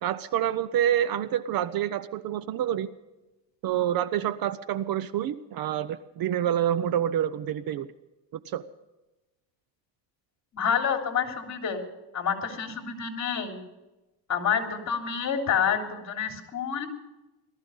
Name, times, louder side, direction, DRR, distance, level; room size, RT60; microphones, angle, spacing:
voice 1, 0.0-2.9 3.6-7.9 8.3-8.6, right 10 dB, 50° right, 15 dB, 0.7 m, -27 dB
voice 2, 10.5-11.8 12.1-13.6 14.3-16.9, left 7 dB, 35° left, 3 dB, 3.3 m, -28 dB
19.0 x 13.5 x 5.4 m, 1.0 s
cardioid pair, 125°, 47 cm